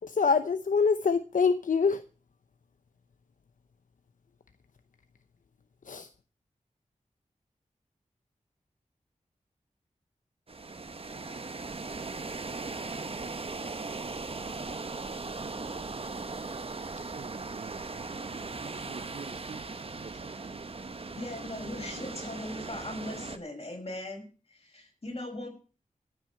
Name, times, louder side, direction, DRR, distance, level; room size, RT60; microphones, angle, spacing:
voice 1, 0.0-2.0 5.8-6.1, left 5 dB, 75° left, 0.7 m, -25 dB
sound 1, 10.5-23.4, right 3 dB, 45° right, 1.0 m, -38 dB
voice 2, 17.1-19.6 19.9-20.9, right 5 dB, 70° right, 0.7 m, -47 dB
voice 3, 21.2-25.5, left 1 dB, 50° left, 6.1 m, -39 dB
14.0 x 6.1 x 8.9 m
wide cardioid pair, 95°, 14 cm